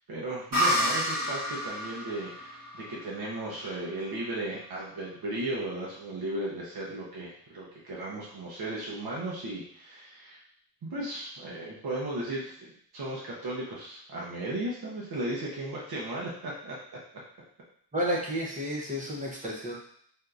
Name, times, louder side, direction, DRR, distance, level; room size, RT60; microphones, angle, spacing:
voice 1, 0.1-10.4 10.8-16.8, right 1 dB, 70° right, -5 dB, 0.8 m, -36 dB
sound 1, 0.5-4.1, equal, 45° right, 1.3 m, -30 dB
voice 2, 17.9-19.8, equal, 20° right, -3 dB, 0.6 m, -31 dB
3.5 x 2.7 x 2.4 m, 0.64 s
wide cardioid pair, 175°, 39 cm